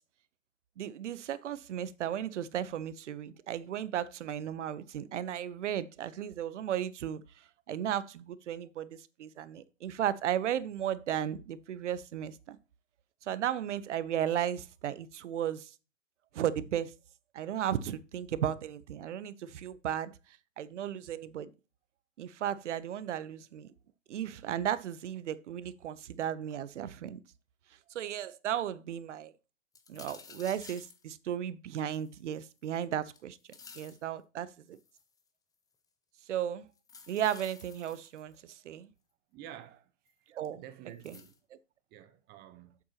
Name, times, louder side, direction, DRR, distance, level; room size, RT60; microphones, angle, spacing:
voice 1, 0.8-7.2 7.7-12.6 13.2-15.7 16.3-16.9 17.3-20.1 20.6-21.5 22.2-23.7 24.1-27.2 27.9-29.3 29.9-33.4 33.7-34.8 36.3-36.7 37.1-38.9 40.3-40.6 41.0-41.2 41.5-41.6, right 10 dB, 65° right, 0.9 m, -35 dB
sound 1, 29.7-31.0 31.9-32.8 33.1-34.0 34.7-35.2 36.8-38.4 40.1-40.2 41.0-41.4, left 5 dB, 10° left, 0.8 m, -52 dB
voice 2, 39.3-39.9 40.5-41.3 41.9-42.8, right 11 dB, 25° right, 0.9 m, -49 dB
8.1 x 7.5 x 2.9 m
hypercardioid pair, 125°, 38 cm